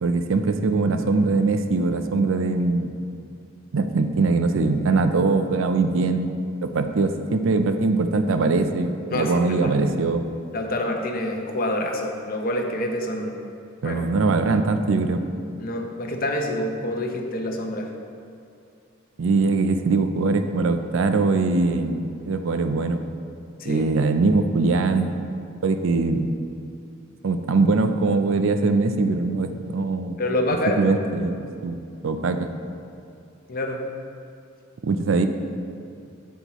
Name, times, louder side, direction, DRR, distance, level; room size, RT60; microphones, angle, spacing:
voice 1, 0.0-2.9 3.7-6.3 6.6-10.2 13.8-15.2 19.2-22.0 22.3-23.0 23.7-25.1 25.6-26.3 27.2-30.2 30.8-31.8 32.0-32.5 34.8-35.3, right 3 dB, 70° right, 8 dB, 0.5 m, -22 dB
voice 2, 9.1-9.7 10.5-13.3 13.8-14.0 15.6-17.9 23.6-23.8 30.2-31.0 33.5-33.8, left 1 dB, 45° left, 3 dB, 0.7 m, -27 dB
7.9 x 7.2 x 3.0 m, 2.5 s
head